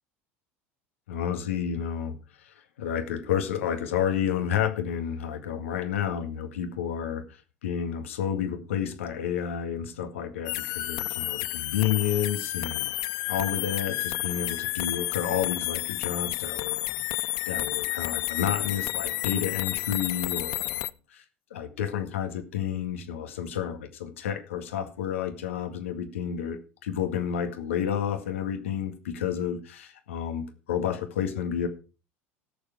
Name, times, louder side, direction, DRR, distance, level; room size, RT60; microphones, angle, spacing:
voice 1, 1.1-2.2 2.4-7.2 7.6-12.9 13.3-17.1 17.5-21.2 21.5-31.7, left 9 dB, 80° left, 8 dB, 2.0 m, -30 dB
sound 1, 10.5-20.9, left 19 dB, 60° left, 0.5 m, -31 dB
16.5 x 7.1 x 5.0 m, 0.33 s
hypercardioid pair, 75°, 7 cm